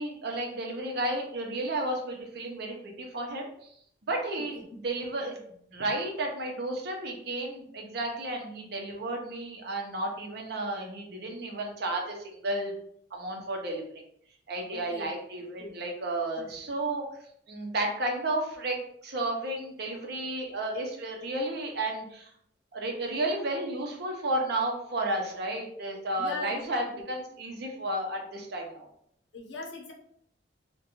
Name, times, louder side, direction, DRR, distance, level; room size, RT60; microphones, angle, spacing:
voice 1, 0.0-3.7 4.0-5.4 5.7-12.7 13.1-13.8 14.5-17.0 17.5-22.3 22.7-28.9, right 1 dB, 60° right, 1 dB, 0.6 m, -32 dB
voice 2, 14.7-15.1 15.6-15.8 16.4-16.5 26.2-27.0 29.3-29.9, left 3 dB, 80° left, 0 dB, 0.7 m, -40 dB
2.4 x 2.2 x 2.9 m, 0.68 s
head